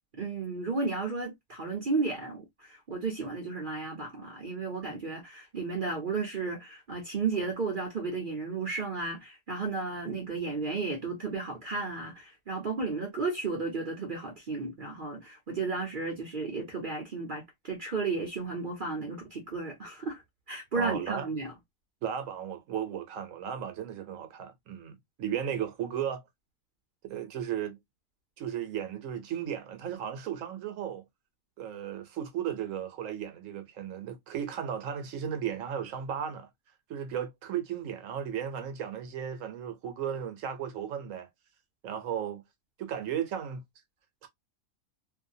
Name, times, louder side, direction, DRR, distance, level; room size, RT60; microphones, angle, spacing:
voice 1, 0.2-20.2 20.5-21.5, right 4 dB, 45° right, 0.7 m, -33 dB
voice 2, 20.7-21.3 22.0-26.2 27.0-27.8 28.4-31.0 31.6-36.5 36.9-41.3 41.8-42.4 42.8-43.6 44.2-44.3, right 9 dB, 65° right, 1.0 m, -35 dB
2.7 x 2.3 x 2.6 m
omnidirectional pair, 1.5 m